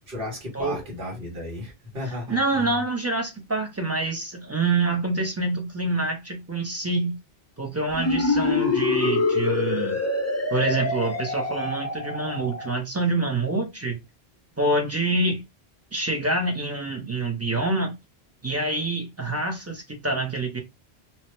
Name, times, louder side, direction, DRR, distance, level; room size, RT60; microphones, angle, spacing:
voice 1, 0.1-2.8, left 1 dB, 65° right, 1.4 m, -34 dB
voice 2, 2.3-7.2 7.6-10.0 10.5-14.0 14.6-15.4 15.9-17.9 18.4-20.6, right 2 dB, 20° right, 0.6 m, -26 dB
sound 1, 7.9-12.7, left 3 dB, 25° left, 0.4 m, -25 dB
2.9 x 2.2 x 3.0 m
omnidirectional pair, 1.0 m